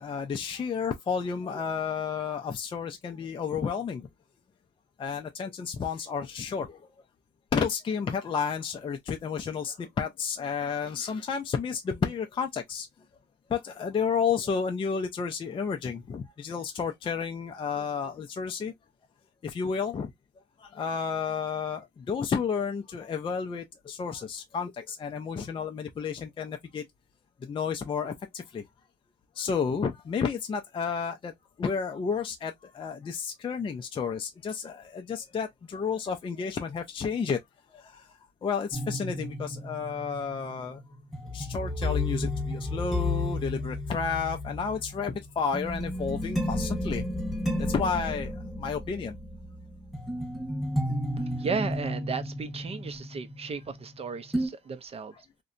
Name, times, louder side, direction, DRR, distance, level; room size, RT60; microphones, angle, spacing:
voice 1, 0.0-4.1 5.0-6.9 7.5-12.9 13.5-18.7 19.4-20.1 20.6-26.8 27.4-28.6 29.4-31.3 31.6-37.4 37.7-38.1 38.4-40.8 41.3-47.1 47.6-48.3 48.6-49.2, left 6 dB, 30° left, 0.4 m, -31 dB
sound 1, 38.7-54.0 54.3-54.5, left 1 dB, ahead, 0.8 m, -32 dB
voice 2, 51.4-55.1, right 5 dB, 35° right, 0.5 m, -34 dB
2.7 x 2.1 x 2.4 m
cardioid pair, 110°, 19 cm